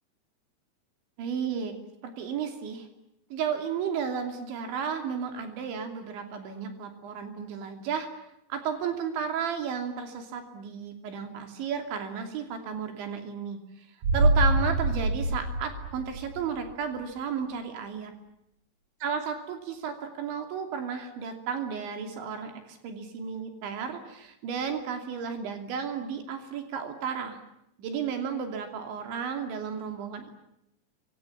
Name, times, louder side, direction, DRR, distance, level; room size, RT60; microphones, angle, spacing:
voice 1, 1.2-1.8 2.0-2.9 3.3-8.1 8.5-13.9 14.1-18.1 19.0-27.4 27.8-30.3, right 7 dB, 85° right, 5 dB, 5.2 m, -33 dB
sound 1, 14.0-16.7 17.0-17.1, right 1 dB, 55° right, 4.8 m, -25 dB
29.5 x 26.5 x 7.3 m, 0.82 s
omnidirectional pair, 5.1 m